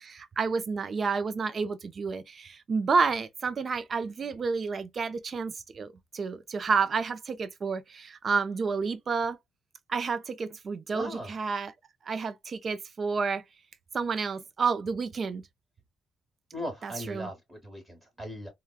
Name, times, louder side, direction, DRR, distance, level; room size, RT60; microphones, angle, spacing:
voice 1, 0.0-9.4 9.9-11.7 12.1-13.4 13.9-15.4 16.8-17.3, right 5 dB, 45° right, 0.5 m, -30 dB
voice 2, 10.9-11.3 16.5-18.5, equal, 10° right, 1.3 m, -38 dB
3.3 x 2.2 x 2.2 m
cardioid pair, 90°, 0 cm